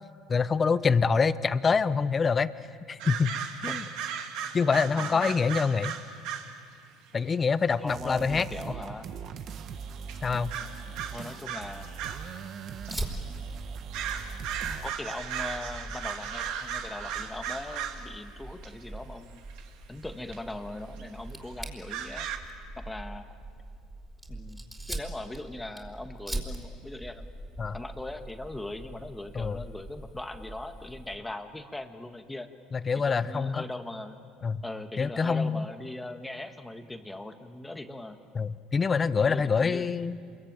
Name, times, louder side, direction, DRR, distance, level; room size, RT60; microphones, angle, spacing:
voice 1, 0.3-2.5 2.9-3.4 3.6-3.8 4.5-5.9 7.1-8.5 10.2-10.5 27.6-27.8 29.3-29.6 32.7-33.6 34.4-34.6 35.0-35.7 38.3-40.2, left 5 dB, 25° left, 14 dB, 0.9 m, -25 dB
sound 1, 3.0-6.6 7.7-7.8 9.4-9.5 10.1-10.2 10.5-12.3 12.8-12.9 13.9-18.1 18.6-18.7 19.5-19.6 20.3-20.4 21.0-21.1 21.9-22.4, right 8 dB, 70° right, 2.2 m, -36 dB
voice 2, 4.9-5.4 7.8-9.0 10.2-11.9 12.9-13.5 14.8-19.4 19.9-22.3 22.8-23.2 24.3-27.3 27.7-32.5 33.1-34.2 34.6-38.2 39.2-39.8, left 2 dB, 10° left, 6 dB, 1.6 m, -40 dB
sound 2, 7.9-14.9, right 6 dB, 50° right, 1.2 m, -40 dB
Fire, 12.9-31.2, right 1 dB, 5° right, 4.3 m, -42 dB
27.5 x 22.5 x 9.0 m, 2.1 s
supercardioid pair, 105°, 0 cm